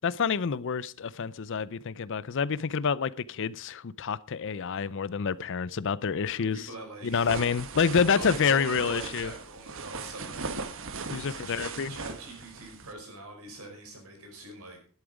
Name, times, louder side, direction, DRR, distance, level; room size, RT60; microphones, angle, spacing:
voice 1, 0.0-6.7 7.0-9.3 11.1-11.9, left 6 dB, 55° left, 0.5 m, -28 dB
voice 2, 6.3-7.3 7.8-10.5 11.3-14.8, right 2 dB, 80° right, 5.4 m, -43 dB
sound 1, 7.1-12.9, right 4 dB, 60° right, 1.2 m, -38 dB
12.0 x 11.5 x 5.0 m
head